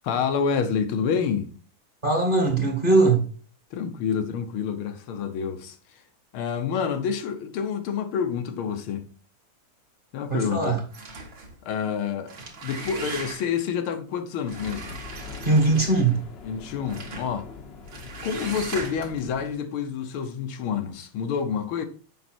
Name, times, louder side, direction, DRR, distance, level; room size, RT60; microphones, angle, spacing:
voice 1, 0.0-1.5 3.7-6.0 6.3-9.1 10.1-10.8 11.6-15.0 16.4-17.5 18.2-21.9, left 7 dB, 90° left, 1.8 m, -28 dB
voice 2, 2.0-3.3 10.3-10.8 15.4-16.2, right 3 dB, 30° right, 1.2 m, -20 dB
sound 1, 10.9-11.6 12.1-13.6 14.5-16.2 16.9-17.3 17.9-19.2, right 3 dB, 65° right, 2.3 m, -38 dB
sound 2, 14.5-19.5, left 5 dB, 50° left, 0.7 m, -42 dB
7.7 x 5.3 x 4.3 m
omnidirectional pair, 2.2 m